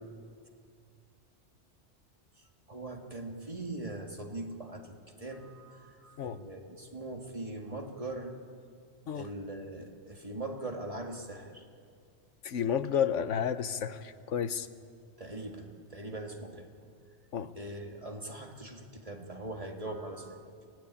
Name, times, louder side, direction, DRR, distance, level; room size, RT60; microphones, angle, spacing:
voice 1, 2.7-8.3 9.1-11.6 15.2-16.7 17.6-20.4, right 2 dB, 30° right, 2 dB, 2.1 m, -41 dB
voice 2, 12.4-14.7 17.3-17.5, left 8 dB, 85° left, 12 dB, 1.2 m, -31 dB
24.0 x 16.5 x 10.0 m, 2.3 s
omnidirectional pair, 1.2 m